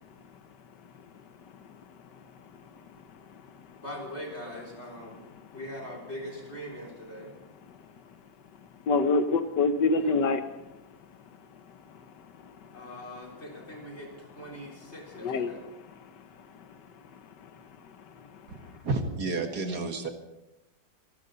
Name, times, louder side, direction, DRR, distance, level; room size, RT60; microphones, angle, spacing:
voice 1, 3.8-5.2 5.5-7.3 10.0-10.2 12.7-15.6, equal, 40° left, -2 dB, 4.3 m, -41 dB
voice 2, 8.9-10.4 12.4-12.8 15.2-15.6 16.0-16.3 16.5-16.7 17.4-17.7 18.1-18.7, left 3 dB, 90° left, 9 dB, 1.7 m, -28 dB
voice 3, 18.8-20.1, right 3 dB, 65° right, 5 dB, 2.2 m, -30 dB
25.5 x 12.5 x 4.0 m, 0.96 s
omnidirectional pair, 1.8 m